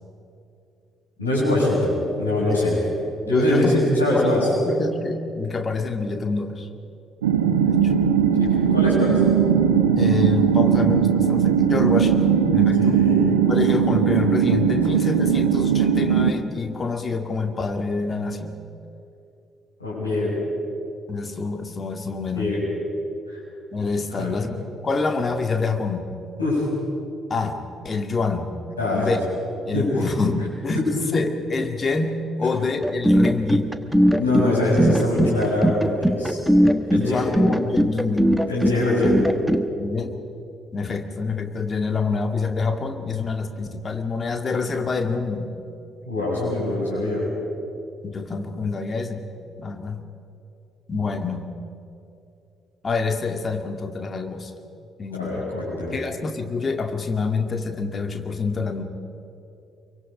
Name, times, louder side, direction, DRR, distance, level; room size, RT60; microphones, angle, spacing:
voice 1, 1.2-2.8 3.3-4.5 8.4-9.2 12.8-13.2 19.8-20.3 22.3-22.6 23.3-23.4 24.1-24.3 26.4-26.6 28.8-29.1 29.7-30.0 30.7-30.9 34.1-36.4 36.9-37.3 38.5-39.2 46.0-47.2 55.1-56.0, left 1 dB, 85° left, -6 dB, 7.0 m, -23 dB
voice 2, 3.2-3.8 4.1-6.7 7.6-7.9 10.0-13.0 13.5-18.6 21.1-22.5 23.7-26.1 27.3-28.6 28.9-29.2 29.7-33.7 36.9-38.3 39.8-40.1 40.7-45.5 46.9-47.2 48.0-49.3 49.6-50.0 50.9-51.4 52.8-54.5 55.0-55.4 55.9-58.8, left 4 dB, 35° left, 6 dB, 2.1 m, -27 dB
sound 1, 7.2-16.3, right 7 dB, 80° right, 1.0 m, -19 dB
sound 2, 32.8-39.7, equal, 5° right, 1.3 m, -20 dB
25.5 x 24.0 x 5.4 m, 2.7 s
figure-of-eight pair, 45°, 0 cm